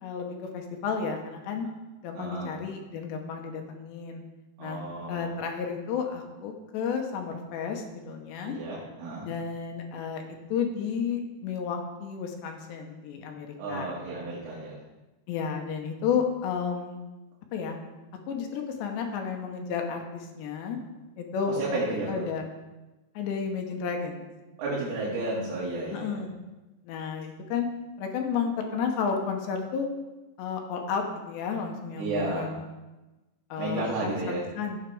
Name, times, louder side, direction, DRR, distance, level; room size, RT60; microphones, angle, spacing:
voice 1, 0.0-1.7 2.0-4.2 4.6-8.6 9.2-10.2 10.5-13.9 15.3-17.1 17.5-17.8 18.3-20.8 21.2-21.6 22.1-22.4 23.2-24.3 25.9-26.3 26.8-27.7 28.0-29.9 30.4-32.7 33.5-34.8, left 6 dB, 75° left, 3 dB, 3.1 m, -32 dB
voice 2, 2.1-2.5 4.6-5.3 8.4-9.3 13.6-14.8 21.5-22.3 24.6-26.2 31.9-32.5 33.6-34.5, right 2 dB, 85° right, -7 dB, 5.0 m, -32 dB
16.5 x 7.3 x 3.5 m, 1.1 s
omnidirectional pair, 5.6 m